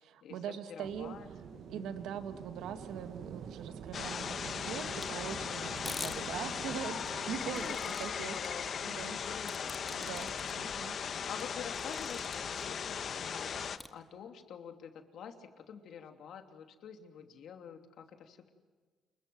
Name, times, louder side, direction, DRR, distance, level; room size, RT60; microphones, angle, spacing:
voice 1, 0.0-1.1 1.7-7.7 8.0-8.4 8.8-9.2 9.9-10.3 10.6-11.0, right 8 dB, 85° right, 8 dB, 2.1 m, -42 dB
voice 2, 0.7-1.9 6.0-6.2 7.4-18.5, left 7 dB, 70° left, 5 dB, 3.0 m, -48 dB
sound 1, 0.8-7.8, right 7 dB, 70° right, 1.6 m, -47 dB
sound 2, 3.9-13.8, left 7 dB, 55° left, 1.2 m, -38 dB
sound 3, 5.0-5.1 5.8-6.2 7.1-8.1 8.4-8.5 9.5-10.5 11.0-11.1 11.4-12.6 13.8-13.9, left 2 dB, 15° left, 2.0 m, -44 dB
29.5 x 21.5 x 7.9 m, 1.4 s
cardioid pair, 90°, 0 cm